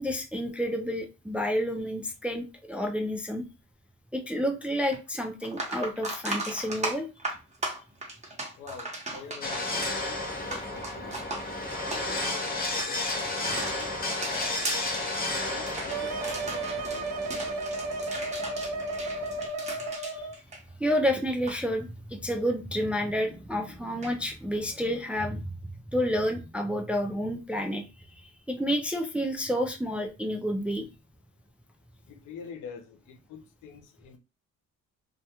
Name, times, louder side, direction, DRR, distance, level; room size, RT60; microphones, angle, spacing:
voice 1, 0.0-3.4 4.1-7.1 15.3-15.4 20.1-20.3 20.8-25.5 25.9-27.8 28.5-30.9, equal, 5° right, 0.3 m, -29 dB
sound 1, 4.9-5.0 5.4-21.0 21.3-21.6 24.0-24.1, right 2 dB, 25° right, 0.8 m, -37 dB
voice 2, 8.6-9.9 10.5-11.2 11.9-14.5 15.4-17.4 32.1-34.2, left 6 dB, 90° left, 0.6 m, -46 dB
sound 2, 9.4-19.5, left 2 dB, 30° left, 0.6 m, -33 dB
sound 3, 15.9-20.4, right 2 dB, 60° right, 0.5 m, -33 dB
2.2 x 2.1 x 2.8 m
cardioid pair, 90°, 30 cm